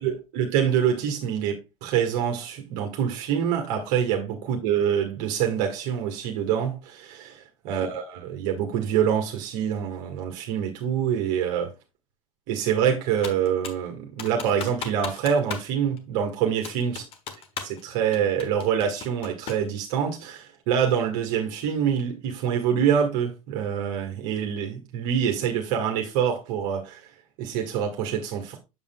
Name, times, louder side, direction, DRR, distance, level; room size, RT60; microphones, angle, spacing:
voice 1, 0.0-11.7 12.5-17.0 17.6-27.0 27.4-28.6, right 8 dB, 45° right, 1.7 m, -26 dB
Computer keyboard, 13.2-13.9 14.2-15.7 16.0-16.1 16.6-17.8 18.1-19.7, left 6 dB, 30° left, 1.3 m, -36 dB
7.5 x 7.1 x 2.3 m
figure-of-eight pair, 95°, 19 cm